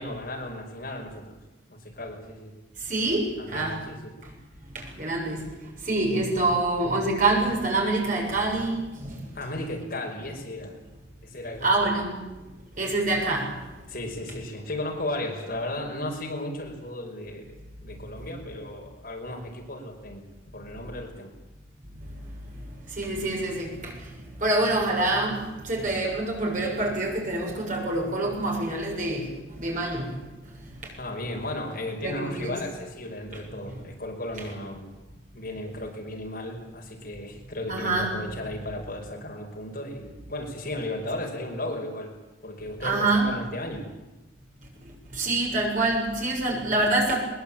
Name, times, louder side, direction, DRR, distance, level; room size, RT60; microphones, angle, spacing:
voice 1, 0.0-1.4 1.7-2.5 3.4-4.1 9.3-10.7 11.2-11.8 13.9-21.3 31.0-34.9 35.3-42.1 42.4-43.8, left 1 dB, 50° left, 1 dB, 5.4 m, -35 dB
voice 2, 2.8-3.8 4.6-5.5 5.8-9.4 11.6-12.2 12.8-13.9 18.2-18.3 22.0-30.2 30.4-30.9 32.0-32.6 33.3-33.4 37.7-38.2 42.8-43.3 44.8-47.2, right 2 dB, 45° right, 0 dB, 7.0 m, -27 dB
22.5 x 21.5 x 8.9 m, 1.1 s
head